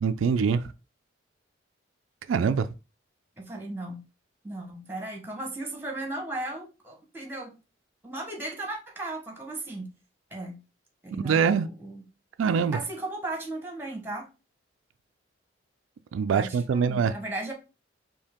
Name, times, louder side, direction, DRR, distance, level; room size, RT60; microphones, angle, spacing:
voice 1, 0.0-0.7 2.3-2.7 11.2-11.7 12.4-12.8 16.1-17.1, right 6 dB, 85° right, 0.3 m, -24 dB
voice 2, 3.4-4.0 4.4-7.6 8.0-9.9 10.3-10.6 11.0-12.0 12.7-14.3 16.3-17.5, right 2 dB, 10° right, 1.0 m, -36 dB
4.4 x 2.8 x 3.5 m
head